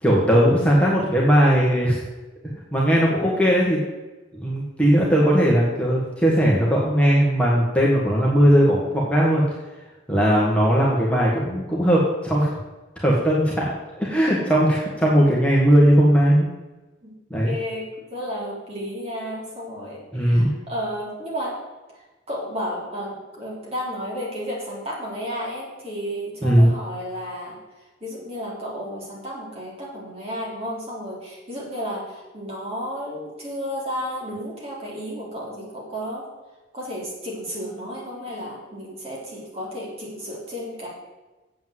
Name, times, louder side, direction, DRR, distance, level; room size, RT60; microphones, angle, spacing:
voice 1, 0.0-2.0 2.7-3.8 4.3-9.4 10.1-12.5 13.0-16.5 17.3-17.5 20.1-20.5 26.4-26.7, equal, 5° left, -5 dB, 1.6 m, -18 dB
voice 2, 17.4-21.6 22.3-27.6 28.0-36.2 36.7-40.9, equal, 30° right, -4 dB, 3.7 m, -32 dB
8.7 x 7.7 x 7.9 m, 1.2 s
head